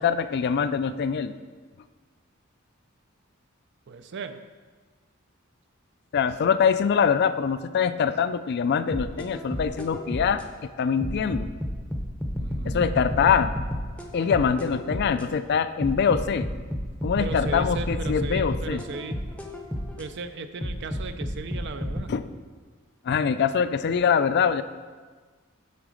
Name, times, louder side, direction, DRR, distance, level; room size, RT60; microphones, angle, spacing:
voice 1, 0.0-1.3 6.1-11.5 12.6-13.5 14.1-16.5 17.0-18.8 22.1-22.2 23.1-24.6, left 6 dB, 50° left, 12 dB, 0.3 m, -24 dB
voice 2, 3.9-4.4 12.4-13.0 17.2-19.2 20.0-22.1, right 4 dB, 60° right, 9 dB, 0.5 m, -37 dB
sound 1, 8.9-10.5 11.0-15.3 15.8-20.1 20.6-22.0, equal, 5° left, 0.6 m, -31 dB
8.4 x 4.1 x 6.3 m, 1.4 s
head